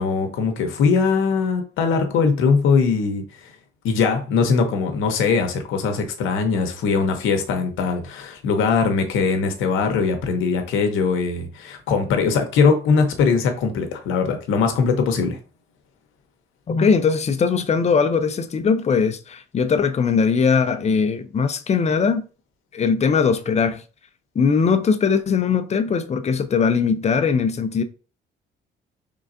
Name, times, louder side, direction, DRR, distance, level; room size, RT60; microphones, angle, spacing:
voice 1, 0.0-3.2 3.8-15.4, left 5 dB, 90° left, 0.8 m, -21 dB
voice 2, 16.7-22.2 22.7-23.8 24.4-27.8, left 5 dB, 35° left, 0.5 m, -20 dB
3.8 x 3.4 x 2.6 m
cardioid pair, 90°, 20 cm